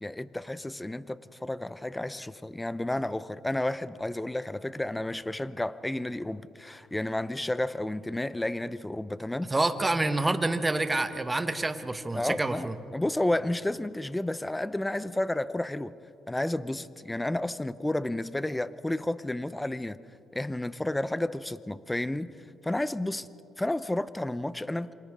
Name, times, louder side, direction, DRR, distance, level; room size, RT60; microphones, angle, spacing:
voice 1, 0.0-9.5 12.1-15.9 16.3-20.0 20.3-22.3 22.6-23.3 23.6-24.9, left 1 dB, 10° left, 15 dB, 0.7 m, -31 dB
voice 2, 9.5-12.7, right 2 dB, 20° right, 9 dB, 1.2 m, -27 dB
27.5 x 25.5 x 3.7 m, 2.6 s
cardioid pair, 90°, 0 cm